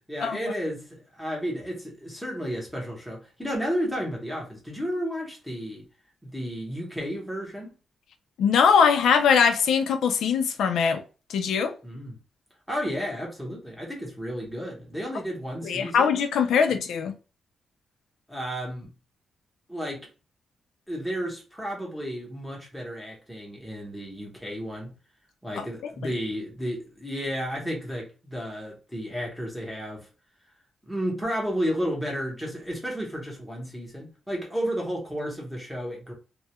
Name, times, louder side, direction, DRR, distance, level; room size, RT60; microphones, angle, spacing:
voice 1, 0.1-5.9 6.2-7.7 11.8-12.2 12.7-16.2 18.3-18.9 19.7-20.1 20.9-24.9 25.4-30.1 30.8-36.1, equal, ahead, 0.8 m, -32 dB
voice 2, 8.4-11.0 11.3-11.7 15.6-17.1, left 6 dB, 85° left, 0.4 m, -21 dB
2.2 x 2.1 x 2.8 m
wide cardioid pair, 175°, 0 cm